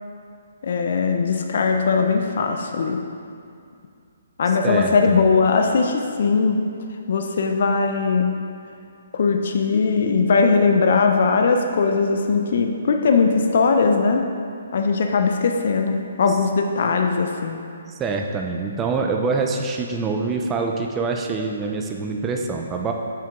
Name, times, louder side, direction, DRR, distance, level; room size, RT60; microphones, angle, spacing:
voice 1, 0.6-3.0 4.4-6.6 7.1-8.4 9.1-14.3 14.7-17.6, left 4 dB, 60° left, 4 dB, 0.4 m, -20 dB
voice 2, 4.6-5.2 18.0-22.9, right 4 dB, 15° right, 2 dB, 0.4 m, -25 dB
5.7 x 4.6 x 3.6 m, 2.4 s
hypercardioid pair, 145°, 0 cm